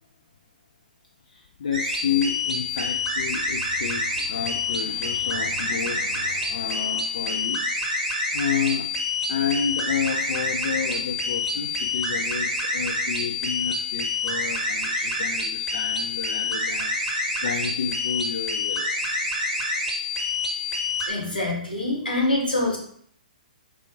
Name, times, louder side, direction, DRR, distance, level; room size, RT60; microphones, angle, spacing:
voice 1, 1.3-7.6 8.3-8.9 9.3-19.0, left 6 dB, 60° left, 2 dB, 0.5 m, -30 dB
sound 1, 1.7-21.1, left 2 dB, 5° left, 1.4 m, -27 dB
voice 2, 21.1-22.8, left 2 dB, 90° left, -2 dB, 1.8 m, -25 dB
4.8 x 3.0 x 3.8 m, 0.63 s
figure-of-eight pair, 125°, 5 cm